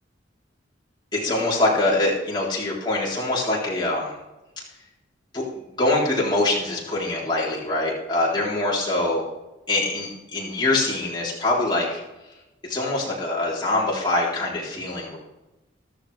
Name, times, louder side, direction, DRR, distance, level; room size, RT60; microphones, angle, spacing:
voice 1, 1.1-4.1 5.3-9.3 9.7-12.0 12.7-15.2, left 2 dB, 25° left, -5 dB, 3.6 m, -24 dB
13.5 x 13.5 x 3.4 m, 1.0 s
head